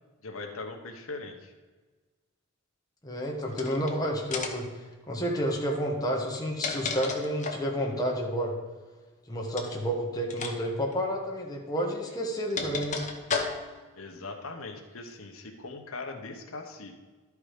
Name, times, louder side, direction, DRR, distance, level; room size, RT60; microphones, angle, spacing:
voice 1, 0.2-1.5 13.9-16.9, left 3 dB, 85° left, 3 dB, 1.1 m, -40 dB
voice 2, 3.0-4.7 5.1-8.5 9.3-13.0, equal, 20° left, -1 dB, 1.4 m, -30 dB
sound 1, 3.5-3.9 4.3-4.7 6.2-7.7 9.5-9.8 10.3-10.5 10.8-10.9 11.9-13.8, left 5 dB, 35° left, 1.0 m, -33 dB
12.0 x 4.8 x 5.0 m, 1.3 s
head